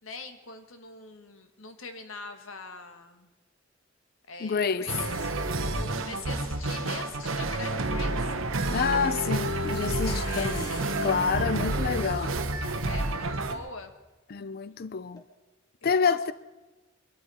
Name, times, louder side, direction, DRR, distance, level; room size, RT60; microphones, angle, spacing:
voice 1, 0.0-3.3 4.3-5.3 5.7-8.3 10.2-10.9 12.8-13.9 15.8-16.3, left 3 dB, 75° left, 1.4 m, -43 dB
voice 2, 4.4-4.9 8.7-10.7 11.0-12.3 14.3-15.2 15.8-16.3, left 5 dB, 50° left, 0.5 m, -28 dB
sound 1, 4.9-13.5, right 2 dB, 80° right, 1.1 m, -29 dB
sound 2, 9.6-11.3 11.5-11.6 11.8-12.1 12.6-12.7 13.0-13.1 15.2-15.3, left 1 dB, 20° left, 2.3 m, -45 dB
23.0 x 13.0 x 4.3 m
head